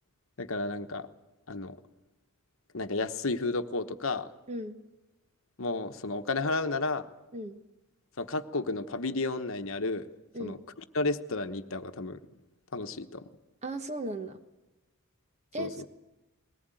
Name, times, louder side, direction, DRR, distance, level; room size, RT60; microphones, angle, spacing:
voice 1, 0.4-1.1 1.5-1.8 2.7-4.3 5.6-7.1 8.2-10.1 10.4-10.6 10.9-12.2 12.7-13.2 15.6-15.8, left 3 dB, 60° left, 8 dB, 1.1 m, -32 dB
voice 2, 4.5-4.8 7.3-7.6 10.3-10.6 13.6-14.4 15.5-15.9, right 1 dB, 30° right, 8 dB, 1.3 m, -36 dB
21.5 x 19.0 x 9.1 m, 1.0 s
head